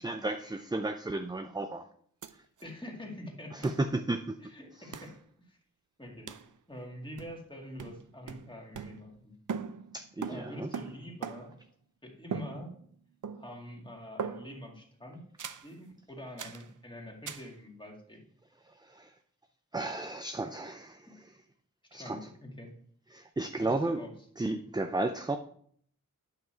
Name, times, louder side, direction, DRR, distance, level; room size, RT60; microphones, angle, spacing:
voice 1, 0.0-1.9 3.5-4.4 9.9-10.7 18.9-19.1 19.7-21.1 21.9-22.2 23.1-24.0 24.4-25.4, right 2 dB, 15° right, 7 dB, 0.4 m, -33 dB
sound 1, 2.2-2.3 2.6-2.7 3.6-3.8 4.9-5.2 6.3-6.5 7.2-7.5 7.8-9.2 9.5-11.7 12.3-13.0 13.2-13.7 14.2-14.7 15.4-15.7 16.4-16.7 17.3-17.5, right 6 dB, 65° right, 0.6 m, -40 dB
voice 2, 2.6-3.7 4.4-5.1 5.5-5.6 6.0-6.3 6.7-9.3 10.3-11.5 12.0-12.7 13.3-15.2 15.6-18.2 21.1-21.2 21.9-22.7 23.6-24.2, left 1 dB, 15° left, 0 dB, 2.1 m, -45 dB
9.5 x 6.0 x 4.5 m, 0.62 s
wide cardioid pair, 90°, 33 cm